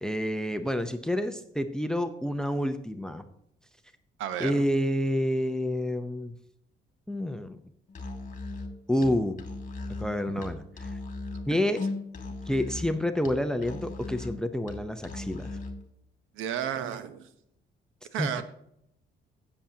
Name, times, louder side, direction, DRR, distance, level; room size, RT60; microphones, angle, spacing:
voice 1, 0.0-3.2 4.4-6.3 7.1-7.6 8.9-9.4 10.0-10.6 10.9-11.0 11.5-11.8 12.5-15.5 18.2-18.3, left 1 dB, 5° left, 9 dB, 0.7 m, -28 dB
voice 2, 4.2-4.6 16.3-17.3 18.1-18.4, right 9 dB, 90° right, 10 dB, 0.9 m, -32 dB
Musical instrument, 7.9-15.8, left 3 dB, 40° left, 2.4 m, -38 dB
16.5 x 7.3 x 2.8 m, 0.73 s
cardioid pair, 90°, 20 cm